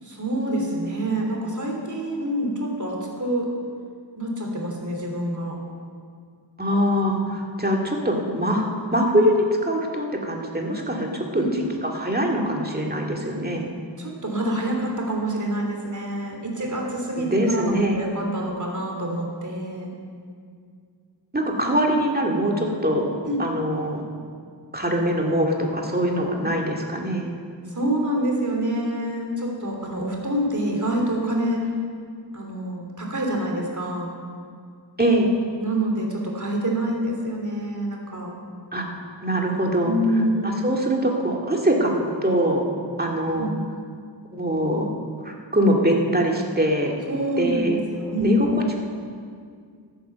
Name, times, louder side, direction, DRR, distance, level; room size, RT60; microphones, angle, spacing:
voice 1, 0.0-3.5 4.2-5.6 11.3-11.5 14.0-19.9 23.3-23.4 27.7-31.7 32.3-34.1 35.6-38.3 39.8-40.6 43.4-43.5 47.1-48.7, right 1 dB, 40° right, -1 dB, 3.2 m, -26 dB
voice 2, 6.6-11.5 11.8-13.7 17.2-18.0 21.3-23.1 23.4-24.0 24.7-27.3 35.0-35.3 38.7-38.9 39.2-39.9 40.4-42.6 43.0-43.5 44.3-44.9 45.2-46.9 47.4-47.8 48.2-48.5, equal, 20° right, 0 dB, 2.1 m, -23 dB
14.0 x 9.5 x 6.9 m, 2.2 s
wide cardioid pair, 60°, 45 cm